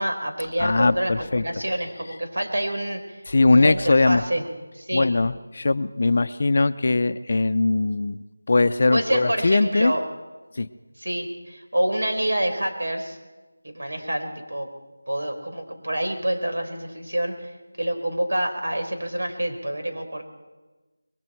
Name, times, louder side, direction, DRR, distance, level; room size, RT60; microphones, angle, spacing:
voice 1, 0.0-3.2 3.5-4.5 4.7-5.1 8.9-10.0 11.0-13.2 13.6-14.7 15.1-20.3, right 1 dB, 80° right, 5 dB, 4.9 m, -27 dB
voice 2, 0.6-1.4 3.3-4.2 4.9-8.2 8.5-9.9 10.6-10.7, left 3 dB, 40° left, 12 dB, 0.7 m, -20 dB
26.5 x 22.0 x 4.6 m, 1.2 s
figure-of-eight pair, 175°, 0 cm